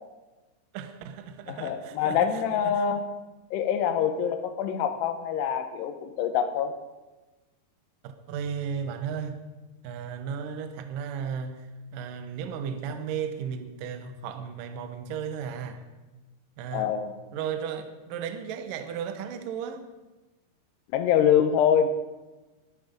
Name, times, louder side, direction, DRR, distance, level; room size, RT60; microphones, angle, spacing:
voice 1, 0.7-2.9 8.0-9.4 9.8-15.8 16.6-17.0 17.3-19.8, right 7 dB, 70° right, 8 dB, 2.3 m, -35 dB
voice 2, 1.5-3.1 3.5-6.7 16.7-17.2 20.9-21.9, left 8 dB, 90° left, 8 dB, 3.1 m, -25 dB
22.0 x 9.5 x 5.2 m, 1.1 s
omnidirectional pair, 4.6 m